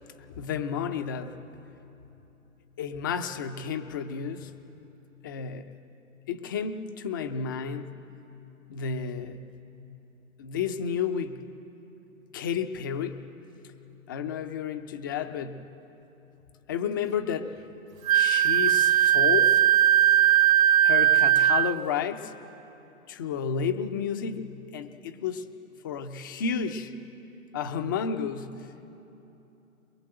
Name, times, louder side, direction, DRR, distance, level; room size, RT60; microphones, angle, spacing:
voice 1, 0.3-1.4 2.8-4.6 5.2-5.8 6.3-8.0 8.7-9.5 10.4-11.5 12.3-13.3 14.1-15.7 16.7-17.5 18.1-19.6 20.8-22.3 23.1-25.5 25.8-27.0 27.5-28.7, left 7 dB, 15° left, 8 dB, 0.5 m, -31 dB
Wind instrument woodwind instrument, 18.1-21.8, right 11 dB, 75° right, 0.5 m, -19 dB
23.5 x 22.0 x 7.7 m, 3.0 s
hypercardioid pair, 140°, 42 cm